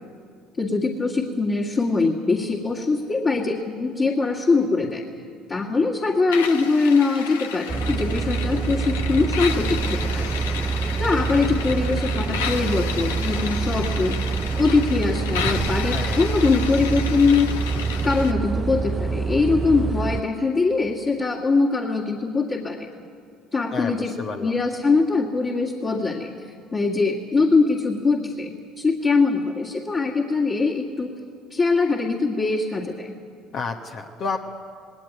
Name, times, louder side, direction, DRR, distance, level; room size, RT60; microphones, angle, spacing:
voice 1, 0.6-5.0 5.5-10.3 11.0-14.2 14.6-17.6 18.0-22.9 23.5-24.1 24.4-31.1 31.5-33.1, left 4 dB, 35° left, 0 dB, 2.1 m, -22 dB
sound 1, 6.3-18.3, left 7 dB, 90° left, 1.1 m, -33 dB
sound 2, 7.7-20.2, right 5 dB, 25° right, 0.6 m, -26 dB
voice 2, 15.8-16.2 23.7-24.5 33.5-34.4, left 4 dB, 55° left, 2 dB, 1.3 m, -30 dB
19.5 x 18.0 x 9.4 m, 2.3 s
hypercardioid pair, 70°, 0 cm